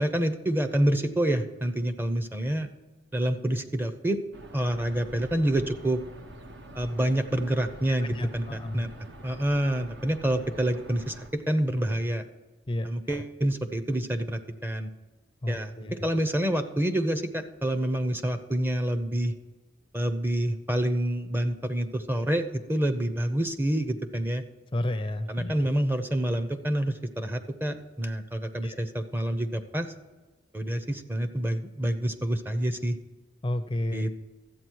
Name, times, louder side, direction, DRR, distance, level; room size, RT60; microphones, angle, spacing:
voice 1, 0.0-2.7 3.1-4.2 4.5-6.0 6.8-8.9 9.2-12.2 12.8-14.9 15.5-19.3 19.9-24.4 25.3-29.9 30.5-33.0 33.9-34.1, right 1 dB, 10° right, 9 dB, 0.7 m, -27 dB
sound 1, 4.3-11.3, right 1 dB, 65° right, 1.1 m, -46 dB
voice 2, 8.0-8.9 12.7-12.9 13.1-13.2 15.4-16.1 24.7-25.5 28.6-28.8 33.4-34.1, left 1 dB, 25° left, 9 dB, 0.5 m, -31 dB
13.0 x 8.5 x 4.6 m, 1.2 s
head